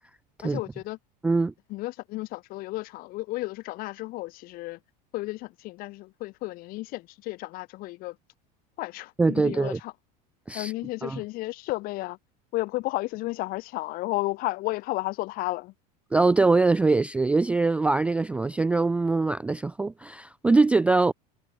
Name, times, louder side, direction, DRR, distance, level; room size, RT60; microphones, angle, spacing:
voice 1, 0.4-1.0 1.7-4.8 5.1-8.2 8.8-9.9 10.5-12.2 12.5-15.7, left 20 dB, 45° left, 2.3 m, -33 dB
voice 2, 1.2-1.5 9.2-9.8 10.5-10.7 11.0-11.2 16.1-21.1, right 3 dB, 5° right, 0.3 m, -23 dB
supercardioid pair, 150°, 20 cm